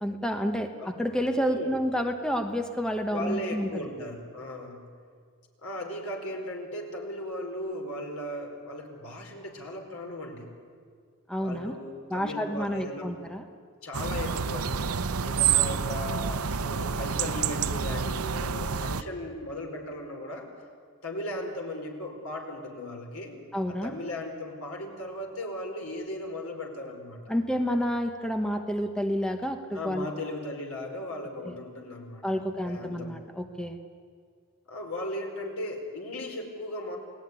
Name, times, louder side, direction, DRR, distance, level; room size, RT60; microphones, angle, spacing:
voice 1, 0.0-3.7 11.3-11.7 12.1-13.4 23.5-23.9 27.3-30.1 31.5-31.6 32.2-33.8, equal, 5° left, 5 dB, 1.1 m, -29 dB
voice 2, 1.4-1.9 3.1-4.9 5.6-10.5 11.4-13.1 13.8-14.9 15.2-20.5 21.0-23.4 23.7-27.3 29.7-33.2 34.7-37.0, left 1 dB, 80° left, 2 dB, 4.8 m, -37 dB
sound 1, 13.9-19.0, right 7 dB, 85° right, 0.8 m, -28 dB
29.0 x 19.0 x 9.8 m, 2.1 s
head